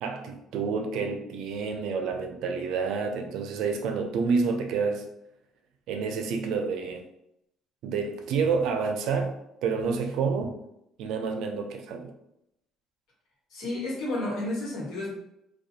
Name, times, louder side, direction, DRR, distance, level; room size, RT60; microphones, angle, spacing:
voice 1, 0.0-5.0 5.9-7.0 7.8-9.3 9.6-10.5 11.0-12.1, right 5 dB, 75° right, 4 dB, 0.4 m, -28 dB
voice 2, 13.5-15.1, left 1 dB, 70° left, -4 dB, 1.1 m, -31 dB
2.4 x 2.2 x 2.7 m, 0.82 s
cardioid pair, 95°, 0 cm